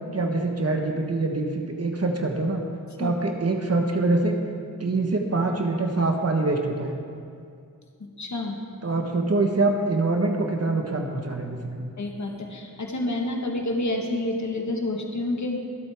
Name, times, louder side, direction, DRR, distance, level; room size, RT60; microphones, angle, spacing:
voice 1, 0.1-2.6 3.0-4.4 4.8-6.9 8.8-11.9, right 2 dB, 45° right, 2 dB, 1.2 m, -24 dB
voice 2, 8.2-8.6 12.0-15.7, left 2 dB, 55° left, 2 dB, 1.5 m, -28 dB
23.0 x 7.9 x 3.5 m, 2.3 s
wide cardioid pair, 70°, 34 cm